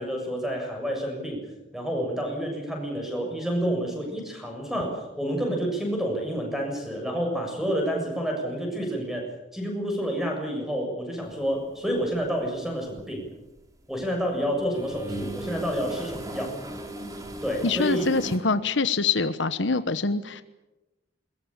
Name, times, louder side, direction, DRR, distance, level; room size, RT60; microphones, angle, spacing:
voice 1, 0.0-1.4 1.7-13.2 13.9-16.6 17.4-18.1, equal, ahead, 1 dB, 7.2 m, -29 dB
sound 1, 12.0-12.3 12.7-14.1 14.5-18.4, right 1 dB, 20° right, 3.2 m, -37 dB
voice 2, 17.6-20.4, left 4 dB, 70° left, 12 dB, 1.1 m, -24 dB
22.0 x 21.5 x 8.9 m, 1.0 s
head